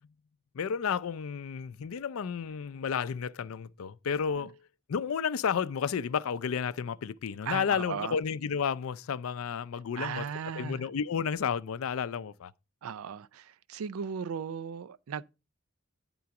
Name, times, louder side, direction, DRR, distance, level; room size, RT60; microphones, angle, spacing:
voice 1, 0.5-4.6 4.9-10.2 10.6-12.5, left 7 dB, 80° left, 0.4 m, -32 dB
voice 2, 7.4-8.2 10.0-10.9 12.8-13.4 13.7-15.2, right 7 dB, 90° right, 0.4 m, -37 dB
9.5 x 3.8 x 5.8 m
head